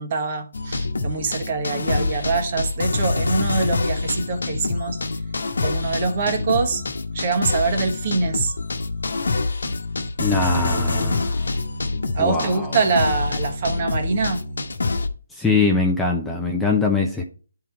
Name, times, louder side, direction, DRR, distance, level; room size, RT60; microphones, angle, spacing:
voice 1, 0.0-5.0 5.6-6.8 7.1-8.5 12.1-14.4, right 4 dB, 40° right, 1.3 m, -24 dB
sound 1, 0.5-15.1, left 3 dB, 80° left, 1.1 m, -26 dB
voice 2, 10.2-11.4 12.2-12.8 15.4-17.2, left 4 dB, 5° left, 0.7 m, -22 dB
10.0 x 3.9 x 4.4 m
hypercardioid pair, 160°, 0 cm